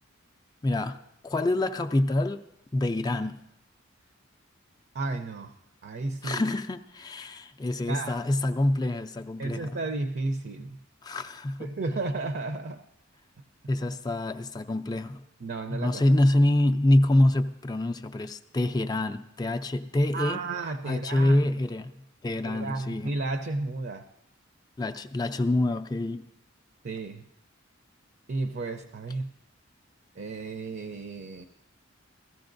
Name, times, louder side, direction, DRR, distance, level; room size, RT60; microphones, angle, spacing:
voice 1, 0.6-1.0 1.2-2.4 2.7-3.4 6.2-9.8 11.0-11.7 13.7-15.2 15.7-20.4 20.8-22.0 22.2-23.1 24.8-26.3, left 1 dB, 20° left, 0.4 m, -26 dB
voice 2, 4.9-5.6 5.8-6.4 7.9-8.2 9.4-10.8 11.6-12.8 15.4-16.1 20.1-21.6 22.4-24.0 26.8-27.2 28.3-29.3 30.2-31.4, right 3 dB, 50° right, 0.6 m, -33 dB
15.5 x 13.5 x 2.6 m
head